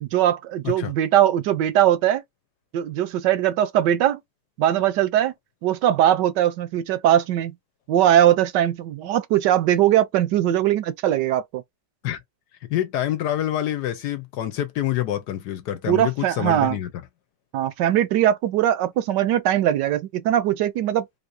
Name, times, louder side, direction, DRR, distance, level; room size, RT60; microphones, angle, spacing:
voice 1, 0.0-2.2 2.7-4.2 4.6-5.3 5.6-7.6 7.9-11.6 15.9-16.8 17.5-21.1, right 11 dB, 75° right, 1.2 m, -20 dB
voice 2, 12.7-16.9, left 12 dB, 70° left, 1.2 m, -26 dB
3.7 x 2.7 x 2.6 m
omnidirectional pair, 2.0 m